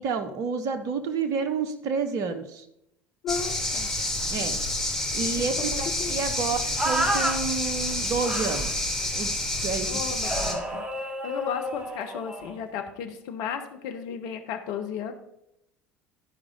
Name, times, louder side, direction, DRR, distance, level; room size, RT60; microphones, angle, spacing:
voice 1, 0.0-2.6 4.3-4.6 5.1-8.9 9.1-10.0 10.4-10.6, right 5 dB, 55° right, 9 dB, 1.0 m, -30 dB
voice 2, 3.2-3.9 5.6-6.5 9.9-15.1, left 7 dB, 60° left, 6 dB, 1.1 m, -35 dB
sound 1, 3.3-10.5, left 1 dB, 5° left, 2.9 m, -29 dB
sound 2, 6.8-7.4 8.2-8.7 10.2-12.6, right 1 dB, 15° right, 2.7 m, -30 dB
13.0 x 4.9 x 5.2 m, 0.81 s
hypercardioid pair, 70°, 7 cm